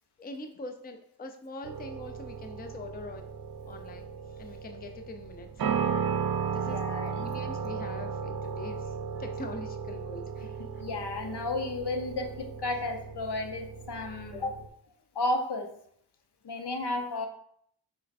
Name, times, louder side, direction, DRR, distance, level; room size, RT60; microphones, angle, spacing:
voice 1, 0.2-3.3 3.6-5.5 6.5-10.8, left 2 dB, 25° left, 6 dB, 0.5 m, -43 dB
sound 1, 1.6-14.7, right 6 dB, 55° right, 0.6 m, -35 dB
voice 2, 6.6-7.3 10.6-14.6 15.1-15.7 16.4-17.3, left 2 dB, 75° left, 4 dB, 0.8 m, -33 dB
6.2 x 3.3 x 2.5 m, 0.67 s
wide cardioid pair, 65°, 42 cm